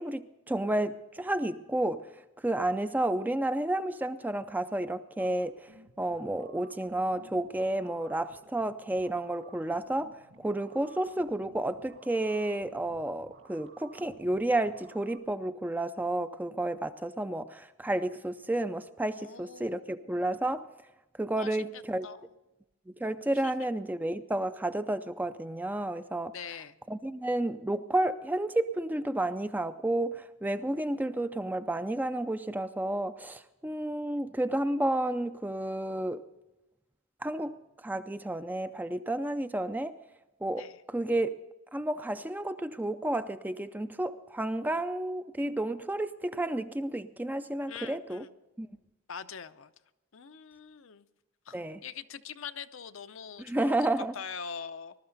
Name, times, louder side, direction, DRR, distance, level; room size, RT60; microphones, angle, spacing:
voice 1, 0.0-2.1 2.4-5.7 6.0-10.1 10.4-20.6 21.2-22.1 23.0-26.3 26.9-36.2 37.2-37.5 37.8-39.9 40.4-41.4 41.7-48.2 48.6-48.7 51.5-51.8 53.4-54.1, right 1 dB, 10° right, 11 dB, 0.4 m, -31 dB
sound 1, 5.2-15.2, right 3 dB, 60° right, 2.4 m, -57 dB
voice 2, 19.1-20.3 21.3-22.3 26.3-26.8 40.5-40.8 47.7-48.4 49.1-49.7 50.1-51.1 51.5-53.7 54.1-54.9, left 6 dB, 65° left, 11 dB, 0.7 m, -43 dB
20.5 x 12.5 x 4.0 m, 1.0 s
head